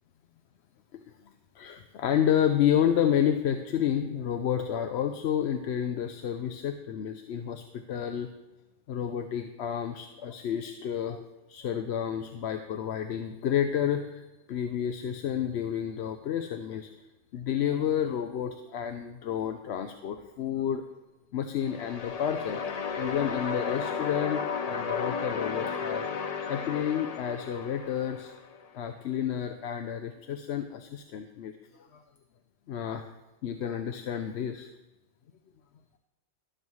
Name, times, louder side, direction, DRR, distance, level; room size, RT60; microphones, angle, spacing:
voice 1, 1.6-8.3 8.9-11.2 11.5-16.9 17.3-20.8 21.3-22.6 23.0-26.1 26.5-28.3 28.7-32.0 32.7-33.1 33.4-34.7, left 9 dB, 75° left, 7 dB, 0.9 m, -30 dB
sound 1, 21.6-28.6, left 5 dB, 45° left, 0.6 m, -33 dB
12.5 x 12.5 x 3.2 m, 1.1 s
omnidirectional pair, 1.2 m